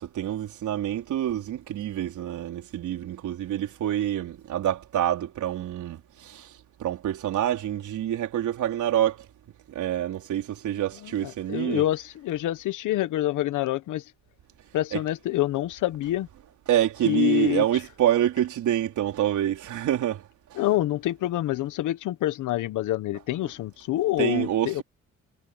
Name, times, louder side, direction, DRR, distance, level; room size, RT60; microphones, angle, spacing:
voice 1, 0.0-9.3 9.7-11.8 14.9-15.0 16.7-20.6 24.2-24.8, right 11 dB, 75° right, 4.1 m, -27 dB
voice 2, 11.0-14.0 14.7-16.3 17.0-17.6 20.6-24.8, left 14 dB, 85° left, 1.3 m, -27 dB
cardioid pair, 90°, 30 cm